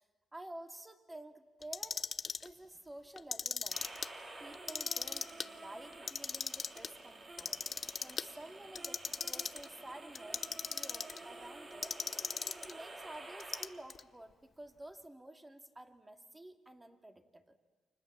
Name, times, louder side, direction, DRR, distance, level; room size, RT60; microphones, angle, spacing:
voice 1, 0.3-2.0 2.4-3.8 4.4-7.6 8.0-10.4 10.7-12.0 12.5-17.6, right 1 dB, 15° right, 6 dB, 2.5 m, -51 dB
Clock, 1.6-2.5 3.2-4.1 4.5-5.5 5.9-6.9 7.4-8.3 8.7-9.7 10.1-11.2 11.8-12.7 13.4-14.0, left 5 dB, 40° left, 0.8 m, -38 dB
sound 1, 3.7-13.6, right 2 dB, 35° right, 5.2 m, -50 dB
29.5 x 25.5 x 7.5 m, 1.4 s
cardioid pair, 90°, 0 cm